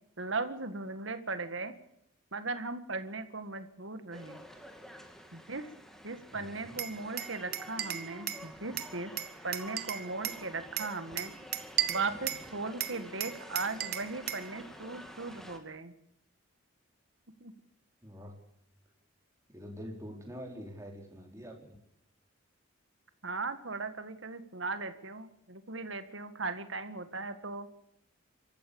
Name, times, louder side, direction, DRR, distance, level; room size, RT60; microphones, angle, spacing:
voice 1, 0.2-1.7 2.3-4.4 5.3-5.7 6.0-9.1 9.4-11.3 11.9-15.9 17.4-17.5 23.2-27.7, right 3 dB, 65° right, 10 dB, 1.9 m, -38 dB
sound 1, 4.1-15.6, equal, ahead, 2.4 m, -49 dB
voice 2, 6.3-6.8 18.0-18.4 19.5-21.8, equal, 15° right, 1 dB, 4.3 m, -45 dB
Glass, 6.8-8.5 8.8-10.4 10.8-12.5 12.8-14.5, right 11 dB, 45° right, 1.6 m, -35 dB
26.0 x 14.5 x 7.1 m, 0.78 s
head